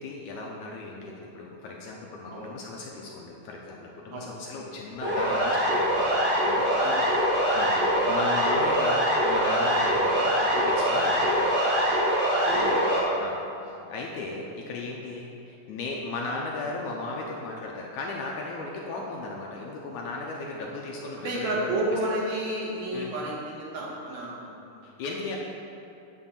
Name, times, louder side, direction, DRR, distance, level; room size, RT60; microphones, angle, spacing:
voice 1, 0.0-6.1 6.5-7.0 7.5-7.8 8.1-11.5 12.6-12.8 13.2-13.4 13.7-21.7 22.9-23.1 24.8-25.4, left 3 dB, 75° left, -1 dB, 1.9 m, -36 dB
Siren, 5.0-13.0, equal, 25° right, 1.8 m, -23 dB
voice 2, 12.4-12.8 13.7-13.8 21.2-24.9, right 1 dB, 90° right, -4 dB, 3.5 m, -31 dB
10.0 x 4.4 x 7.2 m, 2.7 s
omnidirectional pair, 4.1 m